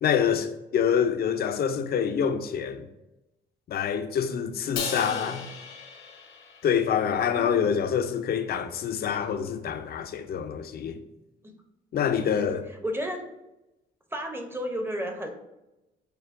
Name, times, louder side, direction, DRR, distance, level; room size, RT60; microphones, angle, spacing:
voice 1, 0.0-2.9 3.7-5.5 6.6-11.0 11.9-12.7, left 8 dB, 50° left, 0.4 m, -26 dB
Crash cymbal, 4.8-7.1, left 5 dB, 85° left, 0.9 m, -36 dB
voice 2, 5.0-5.4 7.3-7.8 11.4-11.6 12.4-13.2 14.1-15.3, equal, 10° right, 0.7 m, -33 dB
6.5 x 2.2 x 2.5 m
cardioid pair, 90°, 20 cm